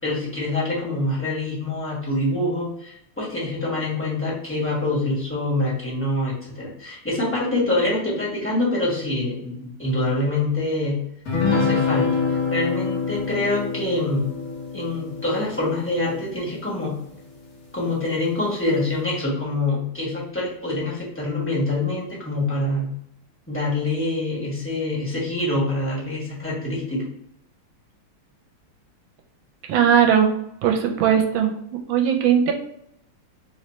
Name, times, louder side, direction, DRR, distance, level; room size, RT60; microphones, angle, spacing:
voice 1, 0.0-11.0 11.5-12.2 12.5-14.3 14.7-17.0 17.7-22.9 23.5-27.1, left 2 dB, 10° left, -7 dB, 0.9 m, -25 dB
sound 1, 11.3-16.9, left 5 dB, 55° left, 1.2 m, -26 dB
voice 2, 29.7-30.4 30.6-31.5 31.9-32.5, right 8 dB, 75° right, 4 dB, 1.3 m, -18 dB
3.2 x 3.1 x 4.1 m, 0.74 s
omnidirectional pair, 2.3 m